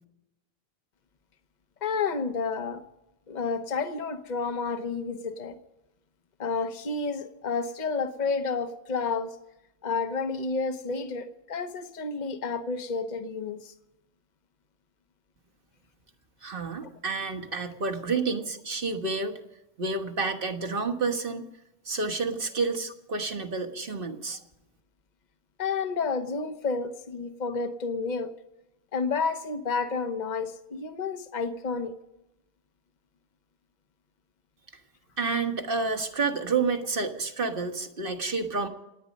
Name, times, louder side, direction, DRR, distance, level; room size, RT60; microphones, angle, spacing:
voice 1, 1.8-2.8 3.3-5.6 6.4-9.3 9.8-13.7 25.6-28.3 28.9-31.9, left 4 dB, 45° left, 9 dB, 1.1 m, -30 dB
voice 2, 16.4-19.3 19.8-21.4 21.8-24.4 35.2-38.7, right 4 dB, 60° right, 5 dB, 1.6 m, -29 dB
27.5 x 9.6 x 5.3 m, 0.92 s
omnidirectional pair, 1.0 m